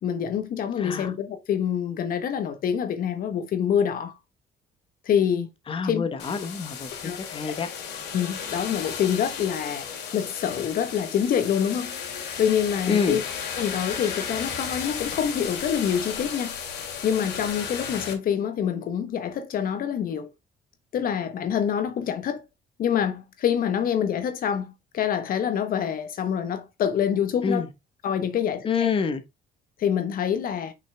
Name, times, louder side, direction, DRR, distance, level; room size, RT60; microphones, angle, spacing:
voice 1, 0.0-4.1 5.0-5.5 5.8-6.1 7.0-7.2 8.1-11.9 12.4-13.2 13.6-16.5 17.0-20.3 20.9-22.4 22.8-27.7 28.0-28.9 29.8-30.7, left 8 dB, 60° left, 1.1 m, -26 dB
voice 2, 0.8-1.1 5.7-7.7 12.9-13.2 27.4-27.7 28.6-29.2, left 5 dB, 30° left, 1.1 m, -27 dB
sound 1, 6.2-18.1, left 7 dB, 80° left, 2.6 m, -34 dB
6.0 x 5.6 x 3.4 m
cardioid pair, 110°, 17 cm